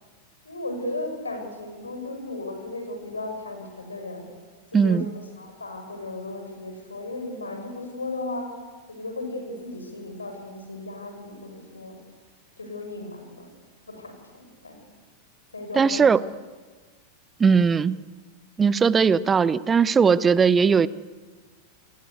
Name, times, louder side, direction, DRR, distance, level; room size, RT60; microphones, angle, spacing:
voice 1, 0.4-4.3 4.7-8.5 8.9-12.0 12.6-13.5 13.9-14.8 15.5-16.1, left 2 dB, 75° left, 5 dB, 6.4 m, -35 dB
voice 2, 4.7-5.1 15.7-16.2 17.4-18.0 18.6-20.9, right 6 dB, 20° right, 19 dB, 0.7 m, -19 dB
29.5 x 21.0 x 8.3 m, 1.4 s
figure-of-eight pair, 90°, 0 cm